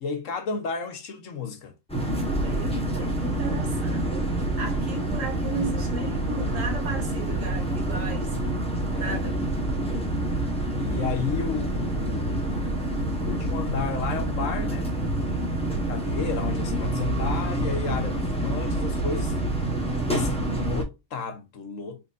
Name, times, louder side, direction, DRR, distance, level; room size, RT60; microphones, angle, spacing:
voice 1, 0.0-1.8 8.9-9.3 9.8-10.1 10.8-12.6 13.2-14.9 15.7-19.4 20.0-22.0, left 5 dB, 70° left, 1.2 m, -33 dB
sound 1, 1.9-20.8, right 1 dB, 5° left, 0.9 m, -27 dB
voice 2, 2.4-8.4 9.0-9.4, right 5 dB, 65° right, 1.9 m, -35 dB
5.2 x 3.5 x 2.5 m
omnidirectional pair, 1.4 m